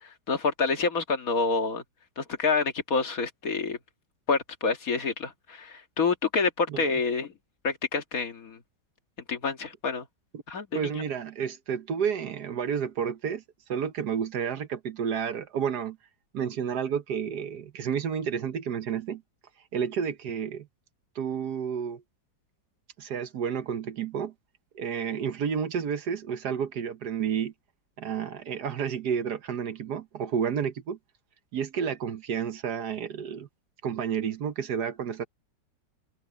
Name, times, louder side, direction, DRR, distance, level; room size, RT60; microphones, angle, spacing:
voice 1, 0.0-1.8 2.2-3.8 4.3-7.3 7.6-8.6 9.3-10.1 10.5-11.0, left 4 dB, 50° left, 2.1 m, -28 dB
voice 2, 10.7-13.4 13.7-16.0 16.3-19.2 19.7-20.7 21.1-22.0 23.0-24.3 24.7-27.5 28.0-31.0 31.5-33.5 33.8-35.3, right 7 dB, 65° right, 1.5 m, -30 dB
omnidirectional pair, 1.9 m